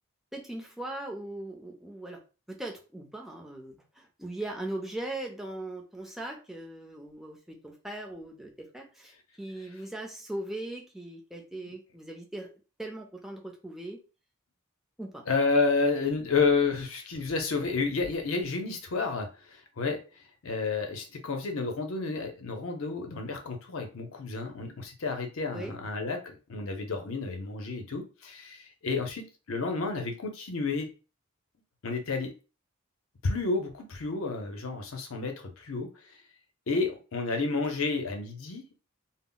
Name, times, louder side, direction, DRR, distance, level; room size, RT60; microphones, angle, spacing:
voice 1, 0.3-2.2 2.5-12.5 12.8-14.0 15.0-15.2 25.5-25.7, right 1 dB, ahead, 0 dB, 0.4 m, -39 dB
voice 2, 15.3-20.0 20.4-30.9 31.8-32.3 33.2-36.2 36.7-38.8, left 4 dB, 75° left, 4 dB, 0.6 m, -30 dB
2.1 x 2.0 x 3.7 m, 0.33 s
head